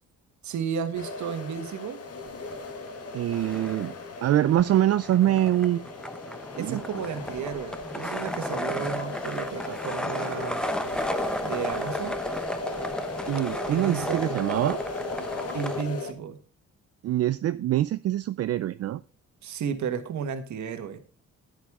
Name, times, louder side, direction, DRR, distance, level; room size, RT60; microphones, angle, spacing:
voice 1, 0.4-2.0 6.6-10.6 11.4-12.2 13.7-14.3 15.5-16.4 19.4-21.0, right 7 dB, 70° right, 8 dB, 1.6 m, -33 dB
sound 1, 0.9-16.1, left 3 dB, 50° left, 1.7 m, -37 dB
sound 2, 2.3-3.0 3.3-15.8, equal, 5° left, 0.8 m, -34 dB
voice 2, 3.1-3.9 4.2-5.9 6.6-6.8 13.3-14.8 17.0-19.0, right 13 dB, 55° right, 13 dB, 0.4 m, -24 dB
11.0 x 9.3 x 3.6 m, 0.37 s
cardioid pair, 90°, 30 cm